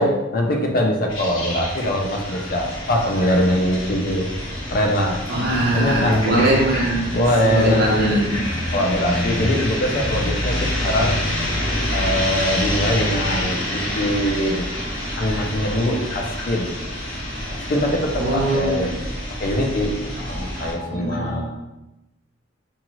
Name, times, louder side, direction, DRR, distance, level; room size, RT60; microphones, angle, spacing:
voice 1, 0.0-4.3 4.7-5.2 5.7-6.5 7.1-8.2 8.7-11.2 11.9-14.7 15.2-16.7 17.7-18.9 19.4-21.5, left 1 dB, 50° left, 1 dB, 0.5 m, -22 dB
sound 1, 1.1-20.7, left 1 dB, 85° left, 1.1 m, -27 dB
voice 2, 5.3-8.4 18.2-18.9 20.3-21.4, right 1 dB, 55° right, -3 dB, 0.8 m, -22 dB
2.7 x 2.4 x 2.9 m, 0.97 s
head